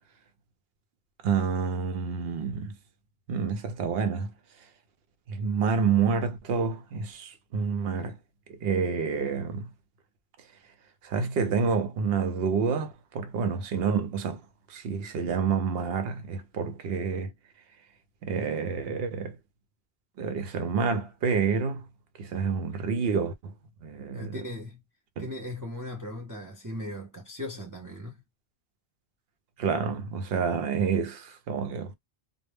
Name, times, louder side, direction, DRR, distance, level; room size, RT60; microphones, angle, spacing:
voice 1, 1.2-2.8 3.3-4.3 5.3-8.2 8.5-9.7 11.0-14.4 14.7-17.3 18.2-19.4 20.2-21.9 22.2-23.5 23.8-24.4 25.2-25.3 29.6-31.9, right 5 dB, 70° right, 0.8 m, -28 dB
voice 2, 24.1-24.8 25.2-28.2, left 1 dB, 25° right, 0.5 m, -38 dB
2.1 x 2.0 x 3.2 m
omnidirectional pair, 1.1 m